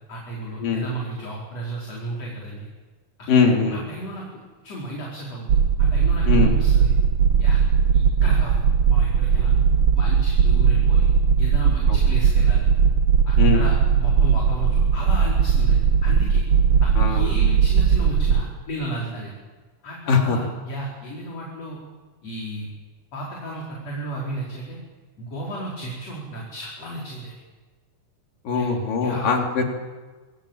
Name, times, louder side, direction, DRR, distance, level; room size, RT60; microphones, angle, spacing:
voice 1, 0.1-2.7 3.4-4.3 4.6-5.5 5.8-7.0 7.4-7.6 7.9-8.6 8.9-9.5 9.9-11.1 11.4-12.7 13.3-13.7 14.0-16.4 16.8-19.3 19.8-21.8 22.2-22.7 23.1-24.8 25.2-27.3 28.5-28.7 29.0-29.3, right 1 dB, 45° left, -3 dB, 5.6 m, -33 dB
voice 2, 3.3-3.8 6.3-6.5 11.9-12.0 13.4-13.6 17.0-17.3 20.1-20.5 28.4-29.7, left 5 dB, 65° left, 2 dB, 4.9 m, -21 dB
sound 1, 5.5-18.4, right 7 dB, 80° right, 1.2 m, -18 dB
27.0 x 22.0 x 9.0 m, 1.3 s
omnidirectional pair, 4.2 m